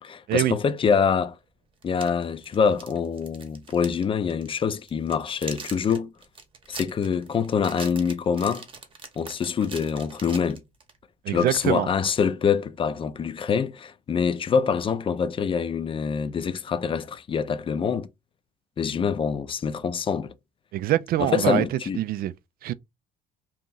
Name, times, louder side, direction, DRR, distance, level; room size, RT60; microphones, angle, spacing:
voice 1, 0.0-1.4 1.8-6.1 6.7-8.6 9.2-10.6 11.3-18.1 18.8-20.3 21.2-22.0, left 6 dB, 30° left, 0.5 m, -25 dB
sound 1, 1.0-1.1 1.8-4.0 4.3-4.5 4.9-11.0, right 4 dB, 30° right, 0.9 m, -42 dB
voice 2, 11.2-11.9 20.7-21.6 22.0-22.3 22.6-22.7, right 13 dB, 60° right, 0.4 m, -24 dB
2.8 x 2.4 x 3.8 m
cardioid pair, 110°, 17 cm